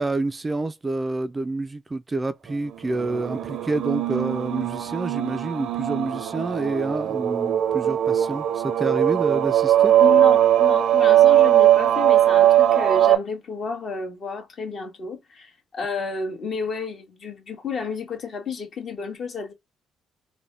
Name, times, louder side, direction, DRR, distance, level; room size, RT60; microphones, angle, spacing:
voice 1, 0.0-9.9, right 2 dB, 25° right, 0.3 m, -28 dB
sound 1, 2.8-13.2, right 12 dB, 75° right, 0.5 m, -19 dB
voice 2, 10.0-19.5, left 5 dB, 55° left, 1.4 m, -31 dB
4.1 x 2.1 x 3.3 m
cardioid pair, 90°, 0 cm